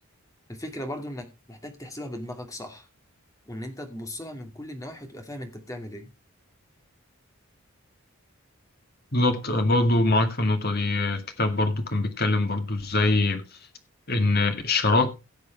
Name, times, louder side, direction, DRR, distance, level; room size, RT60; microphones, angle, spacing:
voice 1, 0.5-2.9 3.5-6.1, left 1 dB, 15° left, 2.5 m, -37 dB
voice 2, 9.1-13.6 14.1-15.1, left 2 dB, 45° left, 2.2 m, -23 dB
16.5 x 6.8 x 4.6 m
head